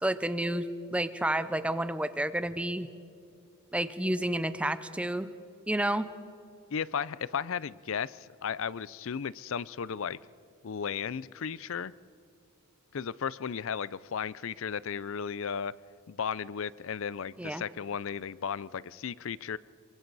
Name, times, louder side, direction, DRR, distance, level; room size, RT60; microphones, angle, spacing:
voice 1, 0.0-2.9 3.7-5.3 5.7-6.1 17.4-17.6, right 1 dB, 5° right, 12 dB, 0.6 m, -30 dB
voice 2, 6.7-10.2 10.6-11.9 12.9-15.7 16.1-19.6, left 7 dB, 60° left, 20 dB, 0.5 m, -35 dB
26.5 x 23.5 x 4.1 m, 2.5 s
head